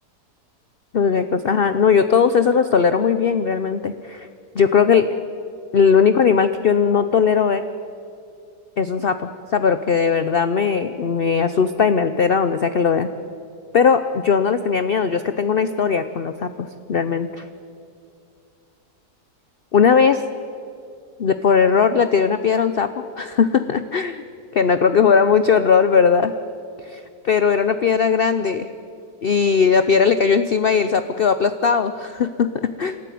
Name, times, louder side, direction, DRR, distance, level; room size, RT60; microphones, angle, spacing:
voice 1, 0.9-4.3 4.5-5.1 5.7-7.6 8.8-13.1 13.7-17.5 19.7-20.2 21.2-22.9 23.2-24.2 24.5-26.3 26.8-28.7 29.2-33.0, left 6 dB, 55° left, 10 dB, 0.6 m, -18 dB
27.5 x 13.5 x 9.4 m, 2.5 s
omnidirectional pair, 1.8 m